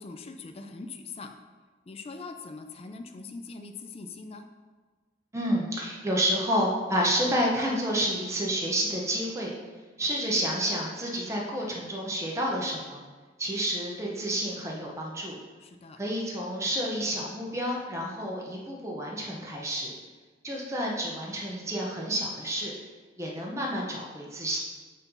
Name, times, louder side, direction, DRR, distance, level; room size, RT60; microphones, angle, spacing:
voice 1, 0.0-1.3 1.9-4.5 15.6-16.0, left 3 dB, 35° left, 5 dB, 0.4 m, -42 dB
voice 2, 5.3-9.5 10.0-13.0 13.4-15.4 15.9-19.9 20.4-22.7 23.2-24.6, equal, 15° right, -3 dB, 0.8 m, -29 dB
8.0 x 2.7 x 5.4 m, 1.4 s
head